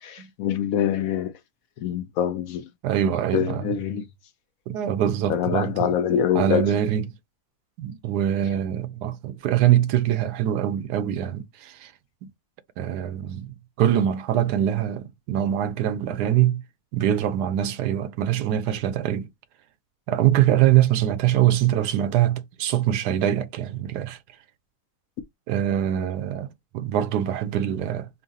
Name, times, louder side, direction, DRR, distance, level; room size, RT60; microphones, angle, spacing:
voice 1, 0.0-1.3 1.8-2.7 3.3-4.1 5.3-6.7, left 9 dB, 70° left, 0.9 m, -25 dB
voice 2, 2.8-3.7 4.7-5.9 6.3-7.0 7.8-11.9 12.8-16.6 16.9-19.3 20.1-24.2 25.5-26.5 26.7-28.1, right 11 dB, 85° right, 1.2 m, -23 dB
5.5 x 2.3 x 2.7 m
omnidirectional pair, 1.7 m